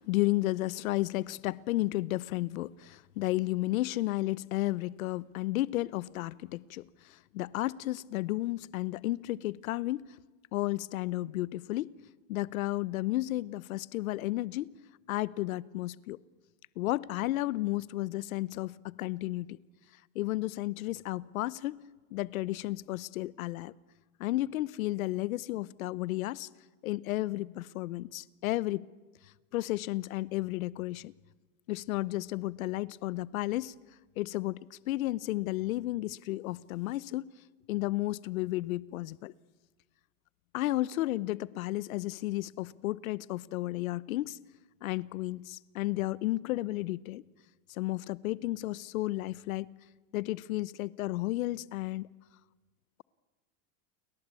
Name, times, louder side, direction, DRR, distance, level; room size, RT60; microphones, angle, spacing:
voice 1, 0.0-10.2 10.5-12.0 12.3-14.7 15.1-16.2 16.8-19.6 20.1-21.8 22.1-23.7 24.2-26.5 26.8-28.8 29.5-31.1 31.7-33.7 34.2-37.3 37.7-39.3 40.5-44.4 44.8-47.2 47.7-49.7 50.1-52.1, left 17 dB, 85° left, 1.0 m, -33 dB
29.5 x 23.0 x 8.4 m
supercardioid pair, 145°, 40 cm